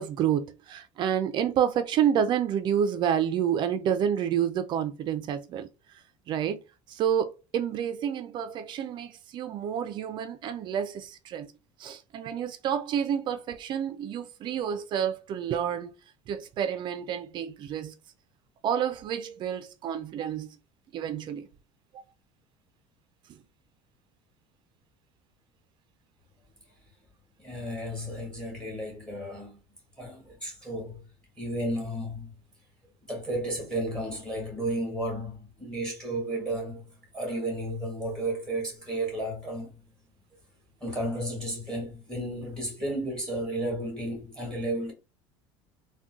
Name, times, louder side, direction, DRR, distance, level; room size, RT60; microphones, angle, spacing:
voice 1, 0.0-5.7 6.3-6.6 6.9-11.5 11.8-15.9 16.3-17.9 18.6-20.5 20.9-21.5, right 9 dB, 45° right, 0.4 m, -29 dB
voice 2, 27.4-29.6 30.0-31.0 31.4-32.3 33.0-39.8 40.8-44.9, right 1 dB, 5° left, 1.4 m, -33 dB
3.5 x 2.2 x 2.6 m
cardioid pair, 140°, 11 cm